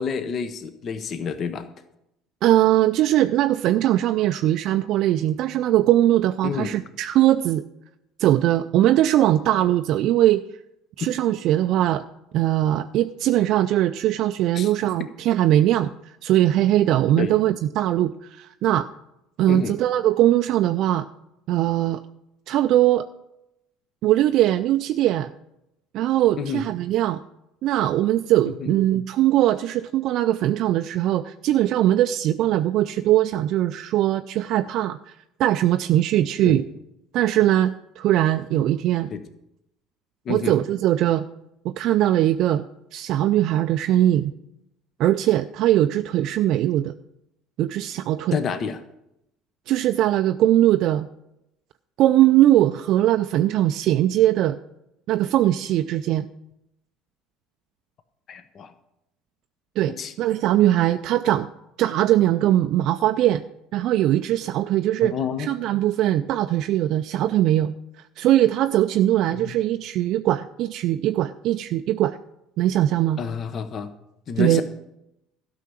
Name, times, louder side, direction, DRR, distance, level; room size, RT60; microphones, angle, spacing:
voice 1, 0.0-1.7 6.4-6.7 14.5-14.7 17.2-17.3 19.5-19.7 26.4-26.6 28.6-28.7 36.4-36.6 39.1-39.2 40.3-40.5 48.3-48.8 58.3-58.7 60.0-60.1 65.0-65.5 69.4-69.5 73.2-73.9 74.3-74.6, left 6 dB, 45° left, 11 dB, 0.9 m, -28 dB
voice 2, 2.4-7.6 8.2-10.4 11.0-12.0 12.3-18.9 19.4-21.1 21.5-22.0 22.5-23.1 24.0-25.3 25.9-27.2 27.6-35.1 35.4-36.7 37.1-39.1 40.3-41.3 41.6-42.6 42.9-44.3 45.0-46.9 47.6-48.4 49.7-51.1 52.0-54.6 55.1-56.3 59.8-61.5 61.8-63.4 63.7-67.7 68.2-72.2 72.6-73.2 74.4-74.6, right 13 dB, 60° right, 8 dB, 0.4 m, -20 dB
12.5 x 5.7 x 7.5 m, 0.84 s
hypercardioid pair, 65°, 0 cm